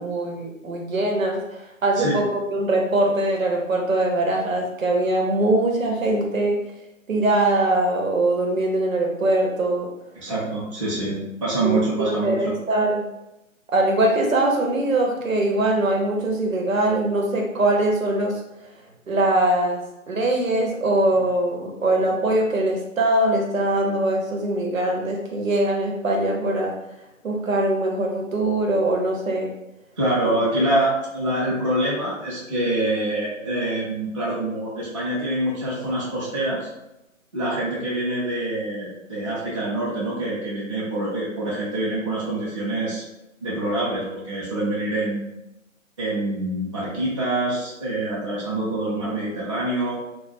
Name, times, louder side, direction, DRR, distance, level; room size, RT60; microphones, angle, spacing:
voice 1, 0.0-6.6 7.1-9.9 11.6-13.0 13.7-18.4 19.1-26.7 27.2-29.5 30.2-30.3, right 1 dB, 80° right, 0 dB, 0.9 m, -22 dB
voice 2, 10.2-12.6 30.0-36.7 37.3-43.0 43.4-45.3 46.0-50.0, right 1 dB, 25° right, -8 dB, 0.4 m, -25 dB
2.1 x 2.1 x 3.3 m, 0.90 s
figure-of-eight pair, 145°, 40 cm